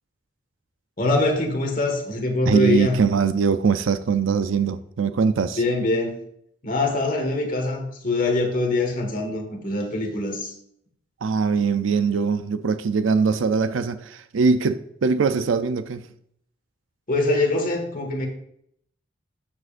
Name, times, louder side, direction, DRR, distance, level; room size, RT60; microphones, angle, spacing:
voice 1, 1.0-2.9 5.6-6.1 6.6-10.5 17.1-18.3, left 2 dB, 40° left, 1.7 m, -23 dB
voice 2, 2.5-5.6 11.2-16.1, right 5 dB, 80° right, 0.5 m, -22 dB
12.0 x 7.4 x 2.5 m
head